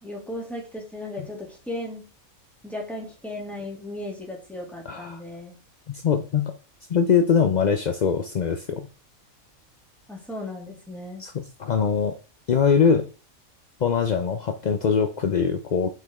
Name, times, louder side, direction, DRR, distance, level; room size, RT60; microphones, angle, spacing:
voice 1, 0.0-2.1 2.6-5.6 10.1-11.2, left 1 dB, ahead, -2 dB, 2.5 m, -36 dB
voice 2, 4.9-5.2 5.9-6.5 6.9-8.9 11.2-12.1 12.5-13.1 13.8-15.9, left 6 dB, 50° left, 6 dB, 0.5 m, -22 dB
9.3 x 5.2 x 3.6 m, 0.36 s
omnidirectional pair, 1.5 m